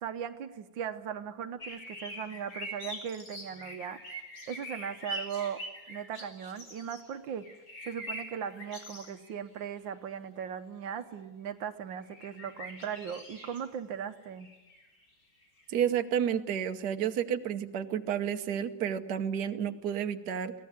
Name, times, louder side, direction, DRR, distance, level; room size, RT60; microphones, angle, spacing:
voice 1, 0.0-4.0 4.5-5.6 5.9-7.5 7.9-14.5, right 8 dB, 75° right, 10 dB, 1.6 m, -38 dB
sound 1, 1.6-7.0 7.4-9.4 9.6-9.7 12.0-13.6 14.2-14.9 15.4-15.6, equal, 45° left, 4.4 m, -43 dB
voice 2, 15.7-20.5, right 9 dB, 60° right, 7 dB, 1.5 m, -31 dB
23.0 x 16.5 x 9.5 m, 1.1 s
omnidirectional pair, 2.1 m